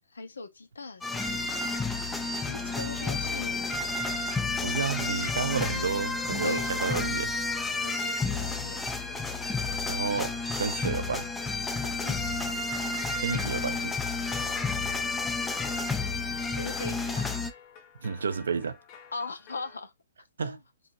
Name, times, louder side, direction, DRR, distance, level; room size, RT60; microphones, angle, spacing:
voice 1, 0.1-1.4 2.5-4.0 6.4-6.8 7.7-8.9 11.8-12.2 16.6-17.4 19.1-19.9 20.4-20.6, left 3 dB, 80° left, 1.2 m, -39 dB
sound 1, 1.0-17.5, left 3 dB, 5° left, 0.6 m, -31 dB
sound 2, 2.3-19.8, left 5 dB, 35° left, 1.1 m, -51 dB
voice 2, 4.6-7.6 9.9-11.3 13.2-14.0 18.0-18.8 20.4-20.6, right 5 dB, 70° right, 0.7 m, -31 dB
4.3 x 3.6 x 2.8 m
figure-of-eight pair, 125°, 0 cm